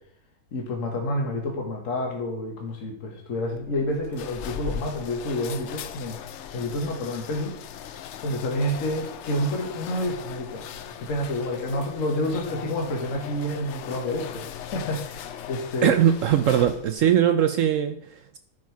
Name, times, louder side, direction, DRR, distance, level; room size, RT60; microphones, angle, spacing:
voice 1, 0.5-6.2 6.5-7.6 8.2-14.4 14.7-16.0, left 1 dB, 55° left, 2 dB, 1.6 m, -29 dB
sound 1, 3.6-17.1, left 9 dB, 70° left, 0.6 m, -39 dB
voice 2, 15.8-18.4, right 10 dB, 70° right, 8 dB, 0.8 m, -21 dB
12.0 x 4.6 x 4.6 m, 0.68 s
omnidirectional pair, 1.7 m